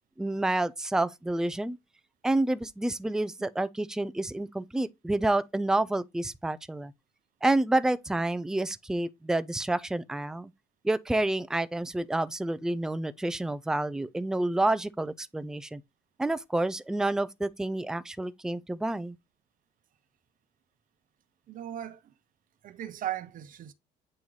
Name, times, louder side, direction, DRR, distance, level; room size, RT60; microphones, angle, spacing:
voice 1, 0.2-1.8 2.2-6.9 7.4-10.5 10.8-15.8 16.2-19.2, right 2 dB, 5° right, 0.5 m, -29 dB
voice 2, 21.5-22.0 22.6-23.7, right 12 dB, 55° right, 0.9 m, -37 dB
8.8 x 3.0 x 3.9 m
cardioid pair, 110°, 17 cm